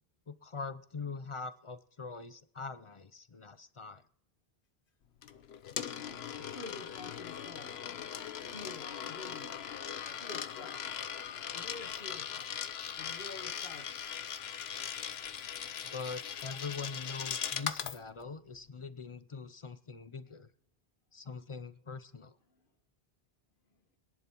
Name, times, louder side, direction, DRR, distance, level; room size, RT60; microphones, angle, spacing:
voice 1, 0.3-4.0 15.8-20.5 21.1-22.4, left 4 dB, 40° left, 0.5 m, -43 dB
Coin (dropping), 5.2-18.0, left 8 dB, 90° left, 1.0 m, -40 dB
voice 2, 6.4-7.8 8.3-9.6 10.1-10.9 11.5-12.4 13.0-14.2 22.5-22.6, left 3 dB, 60° left, 1.5 m, -49 dB
24.0 x 11.0 x 3.0 m
omnidirectional pair, 1.0 m